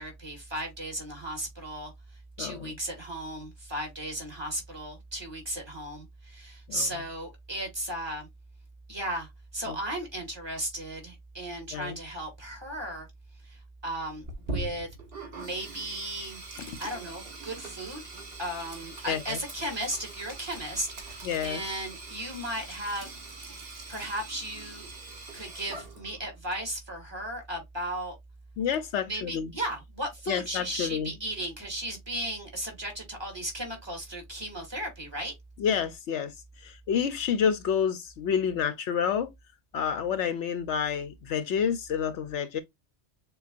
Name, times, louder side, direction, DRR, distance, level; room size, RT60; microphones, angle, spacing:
voice 1, 0.0-1.9 2.4-8.3 8.9-13.1 13.4-14.9 15.3-16.4 16.8-18.0 18.4-23.2 23.9-24.9 25.3-28.2 29.0-35.3, right 1 dB, 20° right, 2.3 m, -35 dB
voice 2, 2.4-2.7 6.7-6.9 9.7-9.8 11.7-12.0 16.7-16.8 19.1-19.4 21.2-21.6 28.6-29.5 30.3-31.1 35.6-39.3 39.7-42.6, left 7 dB, 75° left, 0.9 m, -29 dB
Sink (filling or washing), 14.2-26.3, right 2 dB, 55° right, 1.8 m, -42 dB
6.8 x 2.3 x 2.4 m
omnidirectional pair, 1.2 m